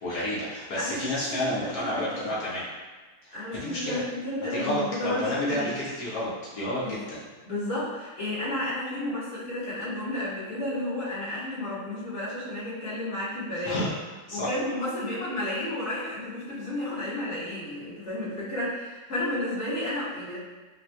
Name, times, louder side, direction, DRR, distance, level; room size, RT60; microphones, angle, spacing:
voice 1, 0.0-2.7 3.2-4.0 4.4-7.2 13.7-13.9 14.3-14.5, left 1 dB, 60° left, -8 dB, 1.1 m, -31 dB
voice 2, 0.7-2.4 3.3-5.7 6.8-7.0 7.4-13.8 14.3-20.4, left 1 dB, 40° left, -12 dB, 1.3 m, -32 dB
4.0 x 2.4 x 2.2 m, 1.3 s
omnidirectional pair, 2.3 m